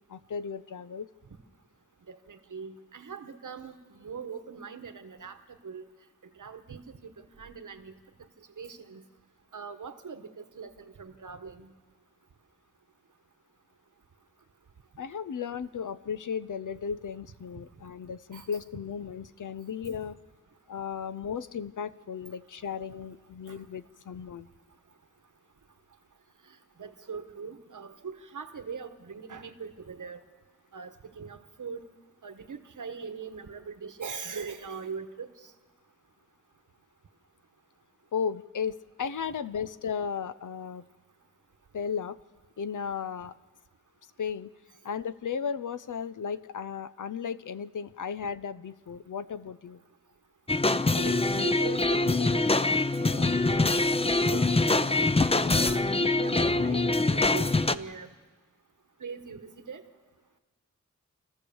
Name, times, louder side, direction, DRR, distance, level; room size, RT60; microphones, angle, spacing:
voice 1, 0.1-1.1 15.0-20.2 20.7-24.5 38.1-40.9 41.7-42.2 42.6-43.3 44.2-44.5 44.8-49.8, left 7 dB, 85° left, 14 dB, 0.6 m, -35 dB
voice 2, 2.1-5.4 5.6-5.9 6.4-7.9 8.6-9.0 9.5-11.7 18.3-18.5 26.8-30.2 30.7-31.8 32.2-35.5 51.0-52.7 53.0-53.7 54.2-55.2 55.6-58.1 59.0-59.8, right 5 dB, 90° right, 8 dB, 1.4 m, -41 dB
sound 1, 50.5-57.8, left 2 dB, 20° left, 0.6 m, -24 dB
28.5 x 14.5 x 7.1 m, 1.4 s
wide cardioid pair, 60°, 30 cm